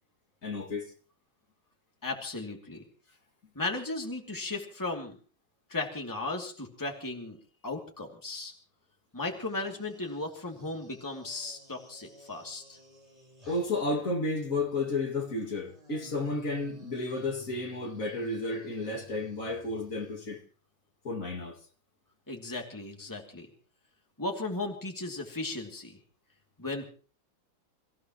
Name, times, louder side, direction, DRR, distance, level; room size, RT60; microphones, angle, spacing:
voice 1, 0.4-0.9 13.5-20.4 21.0-21.6, left 2 dB, 40° left, 2.7 m, -32 dB
voice 2, 2.0-2.8 3.5-5.2 5.7-7.4 7.6-8.5 9.1-12.8 22.3-23.5 24.2-26.0 26.6-26.9, left 2 dB, 10° left, 2.6 m, -36 dB
sound 1, 9.2-14.0 14.9-20.4, equal, 15° right, 4.8 m, -55 dB
28.5 x 15.5 x 3.1 m
omnidirectional pair, 2.2 m